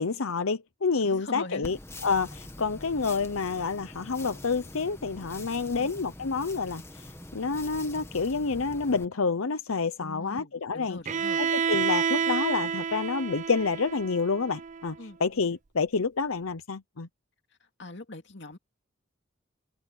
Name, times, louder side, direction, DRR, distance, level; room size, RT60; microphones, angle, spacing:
voice 1, 0.0-1.8 2.0-7.0 7.3-11.0 11.4-17.1, left 4 dB, 85° left, 0.8 m, -28 dB
voice 2, 1.0-1.7 5.7-5.9 10.0-11.4 15.0-15.2 17.8-18.6, left 2 dB, 55° left, 2.6 m, -42 dB
sound 1, 1.6-9.1, left 1 dB, 10° left, 1.7 m, -44 dB
Bowed string instrument, 11.0-14.9, right 6 dB, 35° right, 0.5 m, -29 dB
open air
head